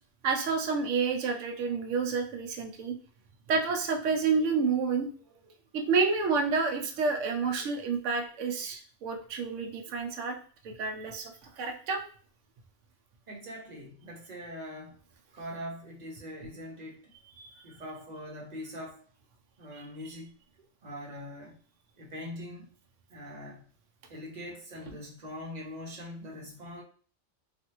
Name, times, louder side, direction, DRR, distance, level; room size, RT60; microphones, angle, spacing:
voice 1, 0.2-2.9 3.5-5.1 5.7-10.4 10.6-11.3 11.6-12.0 17.4-17.5 19.7-19.8, right 4 dB, 85° right, 5 dB, 1.0 m, -29 dB
voice 2, 13.3-15.0 15.3-17.1 17.6-19.1 19.6-21.6 22.0-22.7 23.1-23.6 24.1-26.8, equal, 40° right, -1 dB, 0.9 m, -42 dB
3.2 x 2.5 x 2.9 m, 0.43 s
omnidirectional pair, 1.2 m